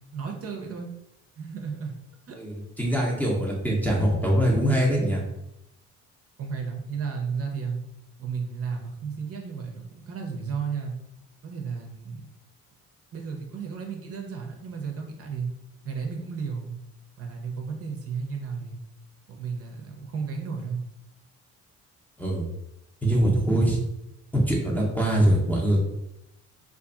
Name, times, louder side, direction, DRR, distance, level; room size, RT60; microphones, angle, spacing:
voice 1, 0.1-0.9 1.4-1.9 2.3-2.7 6.4-7.8 8.2-10.9 11.4-12.2 13.1-15.5 15.8-16.8 17.2-18.8 19.3-20.8, right 5 dB, 50° right, 2 dB, 0.6 m, -33 dB
voice 2, 2.4-5.2 22.2-22.5 23.0-23.8 24.3-25.9, right 1 dB, 5° left, -2 dB, 0.7 m, -23 dB
2.6 x 2.5 x 2.4 m, 0.84 s
cardioid pair, 90°, 30 cm